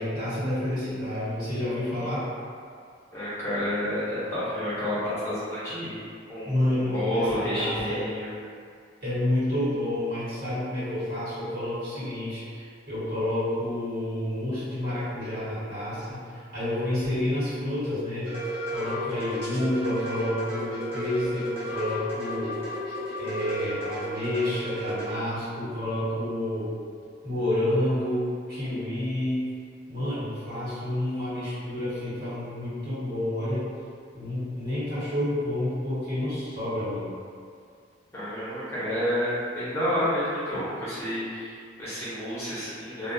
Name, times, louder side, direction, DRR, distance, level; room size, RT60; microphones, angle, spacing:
voice 1, 0.0-2.3 6.4-8.0 9.0-18.4 18.7-22.6 23.2-26.7 27.2-29.6 29.9-33.7 34.1-37.1, left 1 dB, 55° right, -12 dB, 1.2 m, -29 dB
voice 2, 3.1-6.0 6.3-8.3 38.1-43.1, equal, 15° left, -12 dB, 0.6 m, -30 dB
sound 1, 18.2-25.1, equal, 15° right, 0.8 m, -33 dB
2.3 x 2.1 x 2.6 m, 2.2 s
head